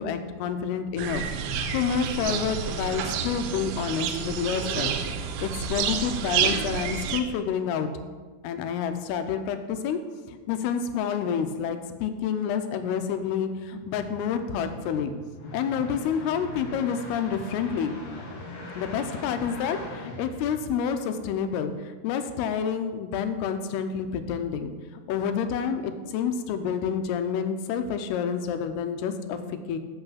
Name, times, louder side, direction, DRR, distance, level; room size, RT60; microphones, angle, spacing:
voice 1, 0.0-4.9 5.4-7.9 8.4-10.0 10.3-15.1 15.5-18.0 18.8-24.7 25.1-29.8, left 7 dB, 80° left, 8 dB, 2.6 m, -29 dB
sound 1, 1.0-7.2, right 7 dB, 80° right, 2.5 m, -29 dB
sound 2, 13.5-21.1, left 1 dB, 65° left, 1.3 m, -41 dB
8.0 x 6.1 x 5.7 m, 1.4 s
omnidirectional pair, 4.6 m